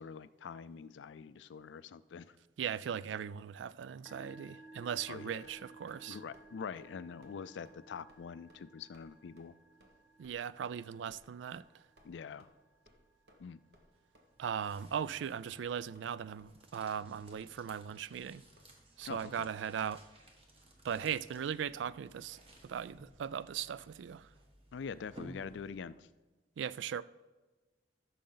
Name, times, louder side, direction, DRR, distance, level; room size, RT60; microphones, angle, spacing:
voice 1, 0.0-2.4 5.1-5.5 6.1-9.5 12.0-12.5 13.4-13.6 19.0-19.5 24.7-26.1, left 6 dB, 75° left, 0.4 m, -45 dB
voice 2, 2.6-6.2 10.2-11.6 14.4-18.4 19.0-20.0 20.8-24.3 26.6-27.0, right 8 dB, 80° right, 0.3 m, -38 dB
Musical instrument, 4.0-18.6, right 2 dB, 15° right, 1.8 m, -60 dB
sound 1, 5.4-6.0 6.3-6.5 6.7-6.9 7.2-7.4 7.6-7.8 8.1-8.2 8.5-8.6 8.9-9.1 9.4-9.5 9.8-9.9 10.2-10.3 10.6-10.8 11.1-11.2 11.5-11.6 12.0-12.1 12.4-12.5 12.8-13.0 13.3-13.4 13.7-13.9 14.1-14.2 14.6-14.8 15.0-15.2 15.5-16.1 16.4-16.6 16.8-16.9 17.3-17.4 17.7-17.8 18.1-18.2 18.6-18.7 19.0-19.1, equal, 60° right, 1.4 m, -64 dB
sound 2, 13.9-26.1, right 1 dB, 30° right, 1.3 m, -58 dB
14.0 x 6.4 x 3.9 m
head